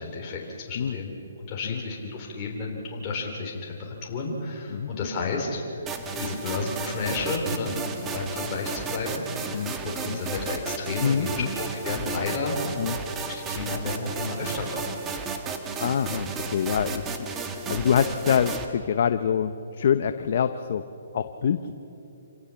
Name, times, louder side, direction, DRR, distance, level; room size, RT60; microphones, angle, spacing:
voice 1, 0.0-5.8 6.2-12.6 13.3-14.8, left 3 dB, 30° left, -2 dB, 3.7 m, -32 dB
sound 1, 5.9-18.7, right 4 dB, 15° right, 1.6 m, -33 dB
voice 2, 11.0-11.5 12.8-13.0 15.8-17.0 17.7-19.5 19.8-20.8 21.1-21.7, left 8 dB, 55° left, 9 dB, 0.9 m, -25 dB
27.0 x 17.5 x 7.1 m, 2.8 s
hypercardioid pair, 155°, 0 cm